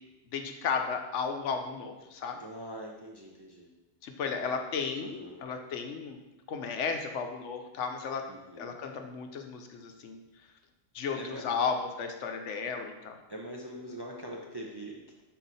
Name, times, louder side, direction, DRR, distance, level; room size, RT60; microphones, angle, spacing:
voice 1, 0.3-2.4 4.0-6.2 6.5-8.2 8.6-10.2 10.9-13.2, left 5 dB, 80° left, 5 dB, 1.0 m, -34 dB
voice 2, 2.4-3.7 5.0-5.5 8.3-8.8 11.2-11.5 13.3-15.2, right 1 dB, 30° right, -1 dB, 0.4 m, -43 dB
5.9 x 4.3 x 4.0 m, 1.1 s
omnidirectional pair, 1.2 m